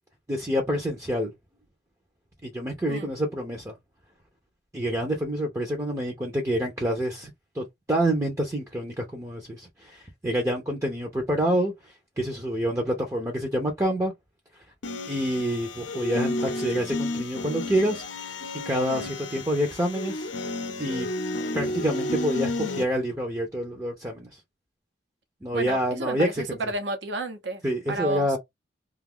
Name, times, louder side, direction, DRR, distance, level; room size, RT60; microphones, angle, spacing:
voice 1, 0.3-1.3 2.4-3.7 4.7-11.7 12.2-14.1 15.1-18.0 18.6-20.3 20.8-21.1 21.5-24.4 25.4-26.6 27.6-28.4, equal, 15° right, 0.6 m, -27 dB
sound 1, 14.8-22.8, left 2 dB, 90° left, 0.6 m, -31 dB
voice 2, 25.5-27.6 27.9-28.3, right 2 dB, 80° right, 0.9 m, -31 dB
2.6 x 2.4 x 3.6 m
head